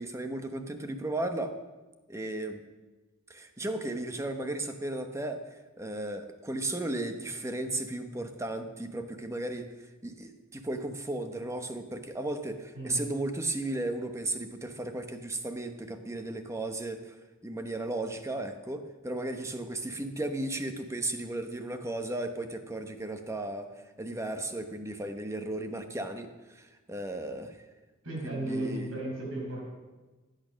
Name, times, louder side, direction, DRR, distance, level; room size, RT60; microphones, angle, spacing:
voice 1, 0.0-1.5 2.1-2.6 3.3-5.4 5.8-9.7 10.0-17.2 17.4-27.6 28.2-28.9, right 2 dB, 15° right, 7 dB, 1.0 m, -35 dB
voice 2, 28.0-29.7, right 1 dB, 70° right, -2 dB, 5.9 m, -35 dB
16.0 x 9.1 x 6.3 m, 1.2 s
head